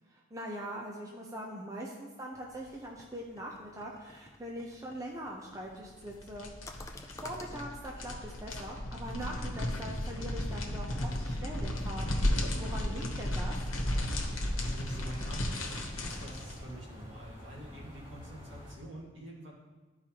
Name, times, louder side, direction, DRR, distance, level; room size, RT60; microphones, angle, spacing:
voice 1, 0.3-6.9 7.2-12.2 12.6-13.6, equal, 15° right, -2 dB, 0.7 m, -42 dB
sound 1, 2.3-7.6, left 2 dB, 15° left, 0.4 m, -53 dB
sound 2, 6.0-16.6, left 1 dB, 85° left, 1.1 m, -34 dB
sound 3, 13.7-18.8, equal, 40° right, 2.6 m, -48 dB
voice 2, 14.3-19.5, right 1 dB, 65° right, -3 dB, 1.8 m, -47 dB
12.5 x 4.8 x 2.9 m, 1.2 s
head